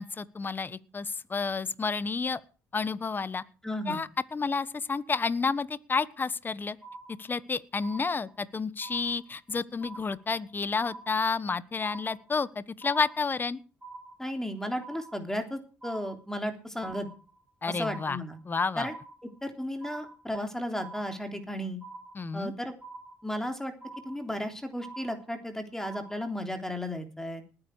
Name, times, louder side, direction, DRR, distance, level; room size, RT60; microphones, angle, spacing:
voice 1, 0.0-2.4 2.7-3.4 3.9-6.8 7.2-13.6 17.6-18.2 18.5-18.9 22.1-22.5, left 4 dB, 30° left, 17 dB, 1.2 m, -30 dB
voice 2, 3.6-4.0 14.2-17.1 17.7-18.4 18.8-18.9 19.4-21.8 22.3-22.7 23.2-23.7 24.0-27.4, equal, 5° left, 6 dB, 3.4 m, -34 dB
sound 1, 6.8-7.5 7.8-8.5 8.8-9.5 9.8-10.5 10.8-11.5 11.8-12.5 12.8-13.5 13.8-14.5 14.8-15.5 15.8-16.5 16.8-17.5 17.8-18.5 18.8-19.5 19.8-20.5 20.8-21.5 21.8-22.5 22.8-23.5 23.8-24.5 24.8-25.5 25.8-26.5, right 3 dB, 20° right, 6.9 m, -47 dB
19.5 x 9.8 x 4.8 m, 0.35 s
supercardioid pair, 65°, 6 cm